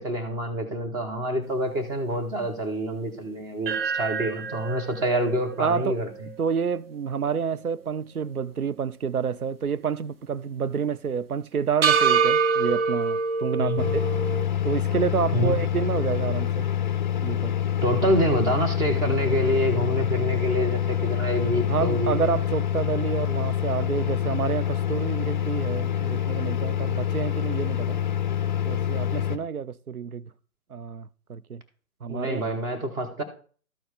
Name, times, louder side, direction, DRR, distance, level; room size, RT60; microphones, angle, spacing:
voice 1, 0.0-6.3 13.6-13.8 15.3-15.5 17.8-22.1 32.1-33.2, equal, 10° right, 0.9 m, -26 dB
sound 1, 3.7-7.9 8.3-8.4 11.8-14.4, right 5 dB, 40° right, 1.0 m, -26 dB
voice 2, 5.6-6.0 6.4-14.1 14.6-16.7 17.2-17.5 21.7-28.0 28.6-30.3 30.7-31.6 32.0-32.4, right 6 dB, 90° right, 0.6 m, -29 dB
sound 2, 13.8-29.4, left 10 dB, 35° left, 0.6 m, -26 dB
13.0 x 4.5 x 5.0 m
figure-of-eight pair, 135°, 43 cm